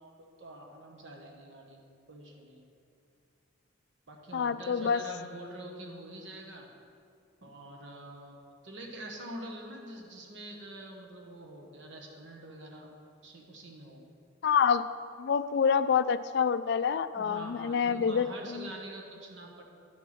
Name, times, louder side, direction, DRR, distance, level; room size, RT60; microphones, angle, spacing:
voice 1, 0.0-2.7 4.1-6.7 7.4-12.9 13.2-14.0 17.1-19.6, right 1 dB, 65° right, 1 dB, 1.2 m, -45 dB
voice 2, 4.3-5.0 14.4-18.7, left 6 dB, 60° left, 13 dB, 0.3 m, -27 dB
10.5 x 4.6 x 5.9 m, 2.4 s
head